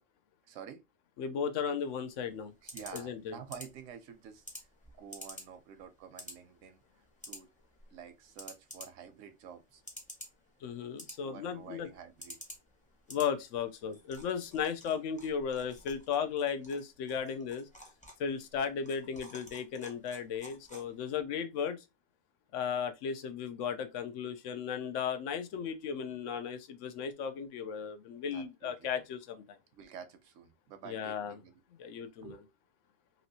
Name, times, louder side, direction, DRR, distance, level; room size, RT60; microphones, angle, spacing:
voice 1, 0.5-0.8 2.6-4.7 5.0-6.8 7.3-7.5 7.9-9.8 11.2-12.4 28.3-28.9 29.7-31.6 32.2-32.5, right 7 dB, 85° right, 1.0 m, -49 dB
voice 2, 1.2-2.5 2.9-3.4 10.6-11.9 13.1-17.7 18.2-21.8 22.5-29.6 30.8-31.4 31.8-32.4, left 7 dB, 85° left, 0.9 m, -35 dB
sound 1, 1.8-21.2, equal, 5° left, 0.8 m, -52 dB
3.0 x 2.8 x 2.7 m
omnidirectional pair, 1.3 m